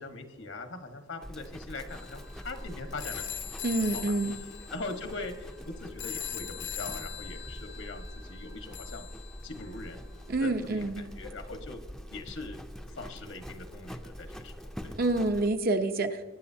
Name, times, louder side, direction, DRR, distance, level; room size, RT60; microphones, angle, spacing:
voice 1, 0.0-3.3 3.8-4.1 4.7-9.1 9.4-10.0 10.4-11.8 12.1-12.6 12.9-14.9, left 3 dB, 80° left, 6 dB, 1.5 m, -41 dB
Livestock farm animals working animals, 1.2-15.5, equal, ahead, 0.6 m, -44 dB
sound 1, 1.9-10.0, left 9 dB, 65° left, 0.7 m, -42 dB
voice 2, 3.6-4.4 10.3-11.0 14.9-16.2, right 2 dB, 50° right, 6 dB, 0.9 m, -27 dB
22.0 x 10.5 x 2.8 m, 1.3 s
head